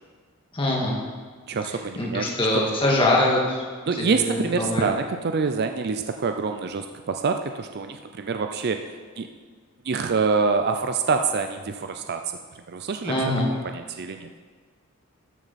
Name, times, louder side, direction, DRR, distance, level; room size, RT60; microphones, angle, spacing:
voice 1, 0.5-1.0 2.0-3.6 4.0-4.9 13.1-13.5, left 1 dB, 25° left, -3 dB, 1.8 m, -23 dB
voice 2, 1.5-2.6 3.9-9.3 9.8-12.2 12.7-13.3 13.6-14.3, right 4 dB, 50° right, 6 dB, 0.4 m, -26 dB
13.0 x 6.8 x 4.2 m, 1.5 s
head